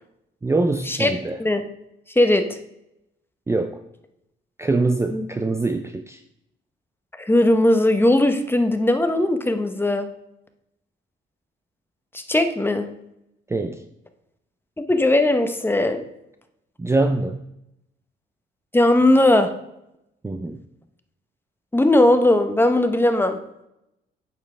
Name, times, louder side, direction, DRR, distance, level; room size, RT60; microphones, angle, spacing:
voice 1, 0.4-1.4 3.5-3.8 4.6-6.2 13.5-13.8 16.8-17.4 20.2-20.6, right 3 dB, 15° right, 7 dB, 0.5 m, -23 dB
voice 2, 7.2-10.1 12.1-12.9 14.8-16.0 18.7-19.5 21.7-23.4, left 1 dB, 10° left, 8 dB, 0.9 m, -18 dB
8.7 x 7.0 x 3.4 m, 0.84 s
cardioid pair, 90°, 20 cm